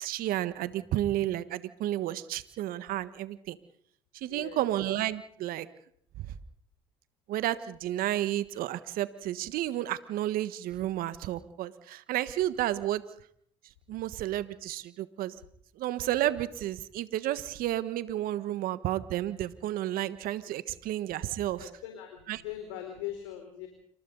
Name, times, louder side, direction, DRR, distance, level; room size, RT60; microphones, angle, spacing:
voice 1, 0.0-3.6 4.1-5.7 6.2-6.3 7.3-13.0 13.9-15.3 15.8-21.7 22.3-22.4, right 13 dB, 70° right, 13 dB, 1.4 m, -31 dB
voice 2, 4.2-4.7 21.6-23.7, left 11 dB, 90° left, 4 dB, 4.3 m, -41 dB
28.0 x 25.5 x 4.0 m, 0.64 s
hypercardioid pair, 70°, 16 cm